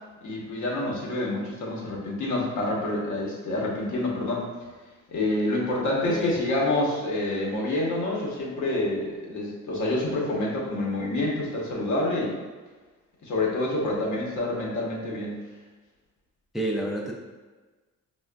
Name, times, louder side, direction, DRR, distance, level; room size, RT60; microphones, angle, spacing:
voice 1, 0.2-4.5 5.1-12.4 13.2-15.3, left 2 dB, 70° left, -3 dB, 1.0 m, -27 dB
voice 2, 6.1-6.4 16.5-17.1, right 1 dB, ahead, -1 dB, 0.4 m, -29 dB
4.7 x 2.3 x 2.2 m, 1.3 s
cardioid pair, 90°, 30 cm